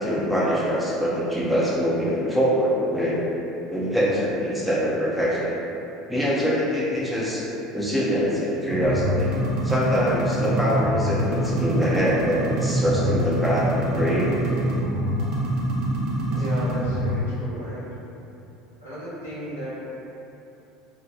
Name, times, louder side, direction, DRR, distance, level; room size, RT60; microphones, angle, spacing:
voice 1, 0.0-3.2 3.7-5.5 6.1-7.4 7.7-9.3 9.6-14.4, equal, 5° right, -6 dB, 0.6 m, -24 dB
sound 1, 8.7-17.2, right 1 dB, 55° right, 0.6 m, -25 dB
voice 2, 16.3-18.0 18.8-19.9, equal, 85° left, -11 dB, 0.8 m, -34 dB
2.9 x 2.1 x 2.4 m, 2.9 s
figure-of-eight pair, 70°, 0 cm